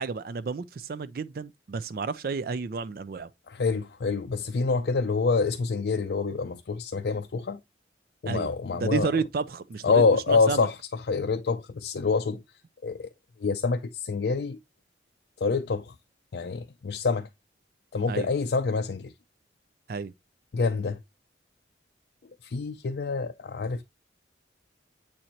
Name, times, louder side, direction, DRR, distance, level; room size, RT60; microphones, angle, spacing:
voice 1, 0.0-3.3 8.3-10.7 18.1-18.3 19.9-20.1, right 4 dB, 50° right, 0.4 m, -31 dB
voice 2, 3.5-7.6 8.2-9.1 9.8-10.7 11.1-12.4 12.8-13.1 13.4-14.6 15.4-15.9 16.3-17.3 17.9-19.1 20.5-21.0 22.4-23.8, left 4 dB, 60° left, 0.4 m, -26 dB
7.6 x 4.2 x 2.9 m
head